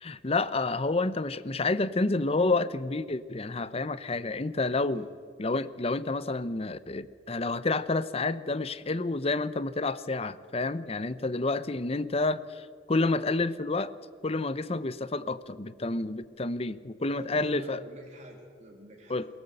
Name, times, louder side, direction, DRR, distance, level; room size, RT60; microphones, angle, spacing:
voice 1, 0.0-5.1 5.4-13.9 14.2-17.8 19.1-19.3, left 3 dB, 35° left, 14 dB, 0.8 m, -29 dB
voice 2, 17.2-19.2, right 1 dB, 45° right, 0 dB, 3.3 m, -48 dB
22.5 x 18.0 x 7.9 m, 2.1 s
head